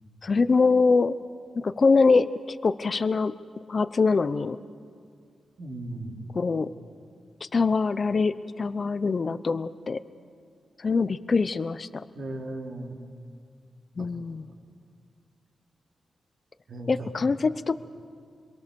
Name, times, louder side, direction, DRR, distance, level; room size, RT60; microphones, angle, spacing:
voice 1, 0.2-1.2 1.5-3.3 3.7-4.6 6.3-6.7 7.4-10.0 10.8-12.0 14.0-14.5 16.9-17.7, left 4 dB, 50° left, 13 dB, 0.7 m, -24 dB
voice 2, 5.6-6.2 12.1-12.9 16.7-17.3, right 1 dB, 70° right, 1 dB, 3.4 m, -36 dB
27.0 x 22.5 x 7.0 m, 2.2 s
cardioid pair, 75°, 0 cm